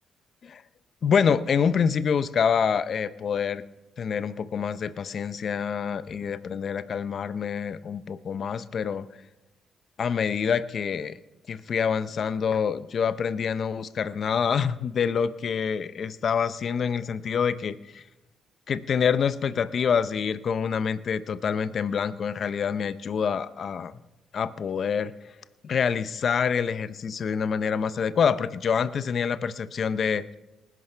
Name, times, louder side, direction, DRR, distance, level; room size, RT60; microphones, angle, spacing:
voice 1, 1.0-3.6 4.0-9.1 10.0-11.2 11.5-18.0 18.7-23.9 24.3-25.1 25.6-30.2, left 7 dB, 55° left, 15 dB, 0.6 m, -26 dB
19.5 x 11.0 x 3.3 m, 1.0 s
supercardioid pair, 60°, 0 cm